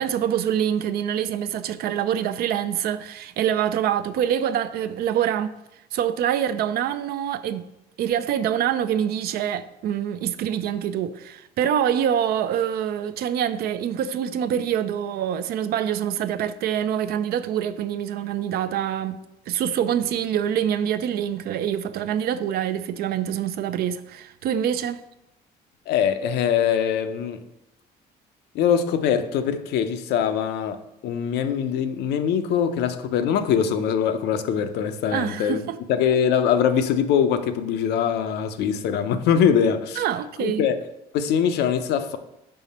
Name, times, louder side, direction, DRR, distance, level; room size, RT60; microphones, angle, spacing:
voice 1, 0.0-5.5 5.9-7.6 8.0-19.2 19.5-25.0 35.1-35.8 40.0-40.6, right 9 dB, 65° right, 0.4 m, -25 dB
voice 2, 25.9-27.4 28.5-35.6 35.9-40.0 40.4-40.8 41.1-42.2, left 8 dB, 80° left, 0.6 m, -22 dB
5.6 x 4.9 x 4.2 m
cardioid pair, 110°, 17 cm